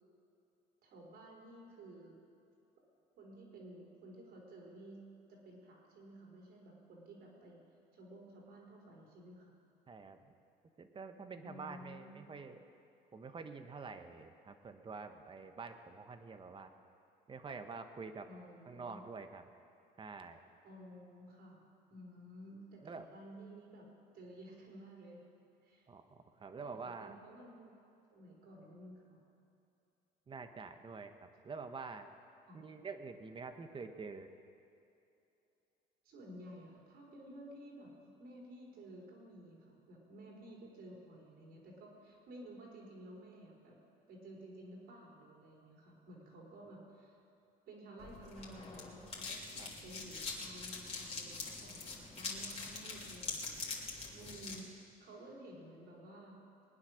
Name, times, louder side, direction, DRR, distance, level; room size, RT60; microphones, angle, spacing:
voice 1, 0.8-2.2 3.2-5.0 5.3-7.6 7.9-9.5 11.4-12.2 18.2-19.0 20.6-21.6 21.9-23.9 24.1-25.3 25.6-25.9 26.6-27.7 28.1-29.2 32.5-32.6 36.0-43.7 44.1-47.2 47.7-53.7 54.1-54.7 55.0-56.4, right 1 dB, 70° right, -2 dB, 4.6 m, -53 dB
voice 2, 9.9-10.3 10.8-12.6 13.1-16.7 17.3-18.3 18.7-19.4 20.0-20.4 22.8-23.0 25.9-27.1 30.3-32.1 32.5-34.3 49.6-49.7, right 4 dB, 30° right, 8 dB, 1.2 m, -47 dB
sound 1, 48.0-54.6, left 4 dB, 35° left, 3.1 m, -44 dB
21.5 x 9.7 x 6.5 m, 2.8 s
cardioid pair, 110°, 17 cm